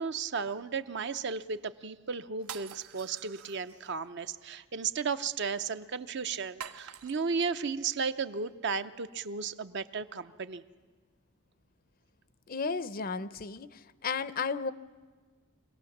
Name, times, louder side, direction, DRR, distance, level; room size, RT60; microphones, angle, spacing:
voice 1, 0.0-10.6, right 5 dB, 50° right, 12 dB, 0.6 m, -34 dB
sound 1, 2.4-3.9 6.6-7.5, right 8 dB, 80° right, 0.9 m, -46 dB
voice 2, 12.5-13.7 14.0-14.7, left 5 dB, 40° left, 15 dB, 0.5 m, -33 dB
25.0 x 17.5 x 7.2 m, 1.5 s
head